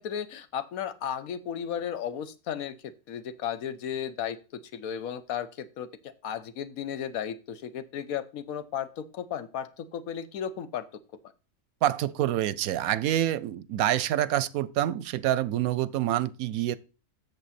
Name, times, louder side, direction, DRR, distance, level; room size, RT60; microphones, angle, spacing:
voice 1, 0.0-10.9, left 8 dB, 80° left, 1.2 m, -35 dB
voice 2, 11.8-16.8, right 12 dB, 90° right, 1.0 m, -27 dB
8.1 x 6.9 x 4.2 m
omnidirectional pair, 1.5 m